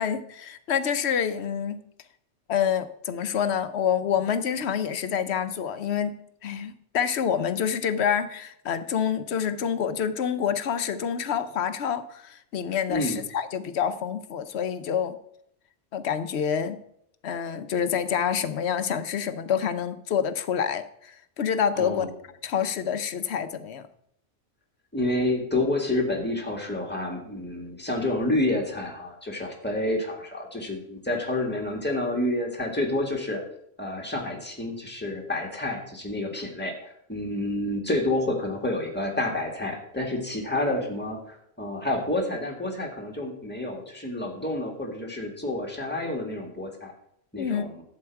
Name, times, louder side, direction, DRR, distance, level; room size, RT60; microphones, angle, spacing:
voice 1, 0.0-1.8 2.5-15.2 15.9-16.8 17.2-22.1 22.4-23.9 47.4-47.7, left 8 dB, 65° left, 11 dB, 1.0 m, -27 dB
voice 2, 12.9-13.2 21.7-22.1 24.9-33.4 33.8-46.9 47.3-47.7, left 1 dB, 10° left, 0 dB, 1.8 m, -29 dB
11.0 x 7.9 x 4.6 m, 0.72 s
omnidirectional pair, 1.2 m